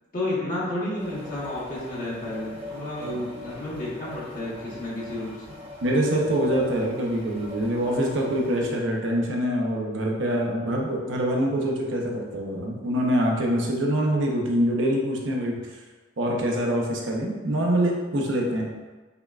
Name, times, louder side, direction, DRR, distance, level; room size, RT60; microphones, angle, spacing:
voice 1, 0.1-5.6, left 1 dB, 45° left, -8 dB, 1.2 m, -32 dB
sound 1, 1.0-8.8, left 2 dB, 30° right, 0.6 m, -40 dB
voice 2, 5.8-15.6 16.2-18.7, right 1 dB, 90° right, -1 dB, 0.7 m, -25 dB
5.5 x 2.2 x 2.4 m, 1.3 s
head